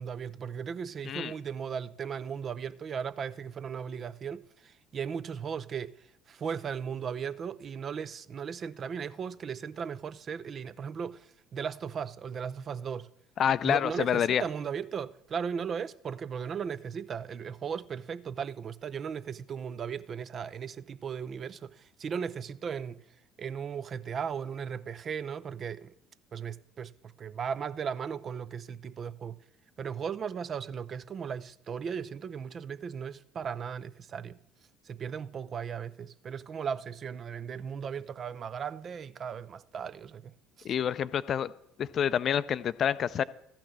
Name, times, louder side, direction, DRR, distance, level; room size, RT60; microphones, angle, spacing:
voice 1, 0.0-6.0 6.3-13.1 13.6-23.0 23.4-25.9 26.3-29.4 29.8-34.4 34.8-40.3 40.6-40.7, right 7 dB, 40° right, 0.5 m, -37 dB
voice 2, 13.4-14.4 40.6-41.5 41.8-43.2, left 9 dB, 45° left, 0.5 m, -27 dB
13.5 x 5.9 x 7.4 m
figure-of-eight pair, 60°, 0 cm